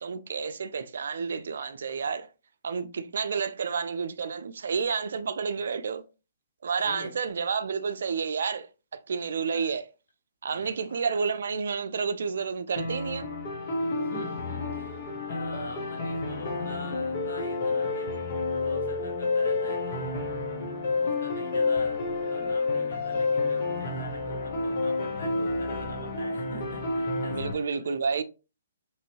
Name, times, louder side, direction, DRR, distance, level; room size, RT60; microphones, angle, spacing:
voice 1, 0.0-2.3 2.6-6.0 6.6-9.9 10.4-13.3 27.3-28.2, right 5 dB, 70° right, 0.4 m, -30 dB
voice 2, 6.8-7.2 9.5-9.8 10.5-11.0 14.0-18.1 18.5-20.2 21.0-28.0, left 3 dB, 75° left, 1.2 m, -44 dB
sound 1, 12.8-27.5, left 3 dB, 45° left, 1.0 m, -30 dB
3.0 x 2.7 x 2.8 m
hypercardioid pair, 135°, 0 cm